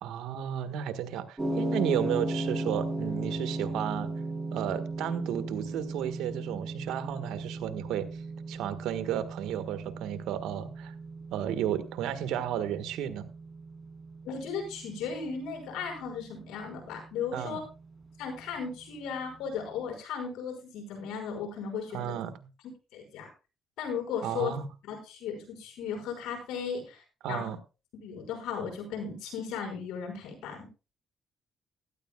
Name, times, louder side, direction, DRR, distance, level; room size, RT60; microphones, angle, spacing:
voice 1, 0.0-4.1 4.5-8.1 8.5-10.9 11.3-13.3 17.3-17.6 21.9-22.3 24.2-24.7 27.2-27.6, right 10 dB, 90° right, 1.4 m, -33 dB
sound 1, 1.4-19.6, right 2 dB, 20° right, 4.1 m, -37 dB
voice 2, 14.3-17.6 18.2-22.2 22.9-23.3 23.8-24.6 24.9-27.5 27.9-30.7, left 6 dB, 90° left, 5.7 m, -36 dB
17.0 x 13.5 x 2.3 m
cardioid pair, 90°, 0 cm